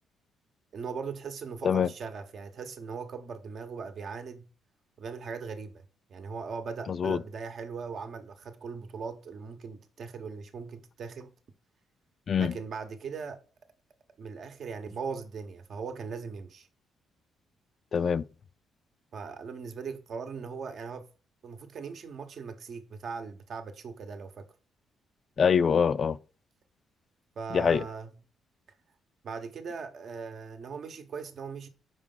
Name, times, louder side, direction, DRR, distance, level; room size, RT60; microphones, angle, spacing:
voice 1, 0.7-4.5 5.0-5.8 6.1-11.3 12.4-13.4 14.2-16.7 19.1-21.1 21.4-24.4 27.4-28.1 29.2-31.7, right 5 dB, 55° right, 0.9 m, -39 dB
voice 2, 6.9-7.2 12.3-12.5 17.9-18.2 25.4-26.2 27.5-27.8, left 6 dB, 50° left, 0.3 m, -24 dB
5.2 x 4.8 x 3.8 m
cardioid pair, 90°, 0 cm